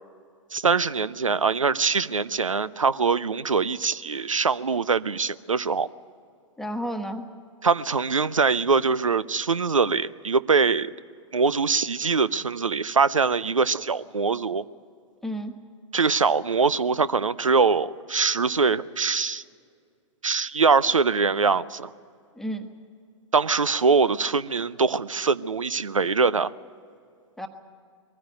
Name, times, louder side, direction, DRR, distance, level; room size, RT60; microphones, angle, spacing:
voice 1, 0.5-5.9 7.6-10.9 11.3-14.6 15.9-19.4 20.2-21.9 23.3-26.5, right 5 dB, 90° right, 19 dB, 0.5 m, -23 dB
voice 2, 6.6-7.3 15.2-15.6 22.3-22.7 27.4-27.5, equal, ahead, 5 dB, 1.3 m, -31 dB
22.0 x 15.0 x 9.1 m, 2.2 s
figure-of-eight pair, 110°, 16 cm